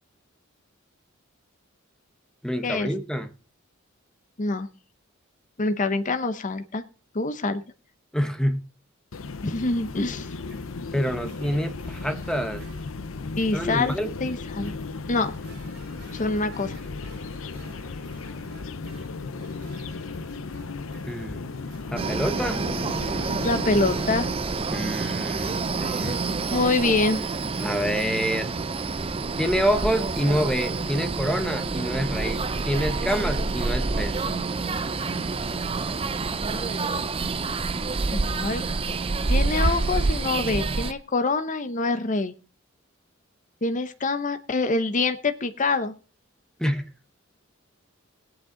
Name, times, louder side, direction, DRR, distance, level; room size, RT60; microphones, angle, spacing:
voice 1, 2.4-3.3 8.1-8.6 10.9-12.6 13.5-14.1 21.1-21.5 21.9-22.6 24.7-26.2 27.6-28.5 29.4-34.2 46.6-46.8, equal, 5° left, 8 dB, 1.0 m, -27 dB
voice 2, 5.6-6.8 7.1-7.6 9.4-10.3 13.4-13.9 14.2-14.7 15.1-15.3 16.1-16.8 23.4-24.3 26.0-26.1 26.5-27.2 38.1-38.6 39.3-42.3 43.6-45.9, left 3 dB, 40° left, 9 dB, 0.8 m, -25 dB
sound 1, 9.1-24.3, left 3 dB, 70° left, 0.7 m, -36 dB
sound 2, 9.8-25.5, right 1 dB, 55° right, 4.6 m, -51 dB
sound 3, 22.0-40.9, right 3 dB, 25° right, 0.5 m, -27 dB
18.0 x 8.8 x 3.8 m, 0.35 s
head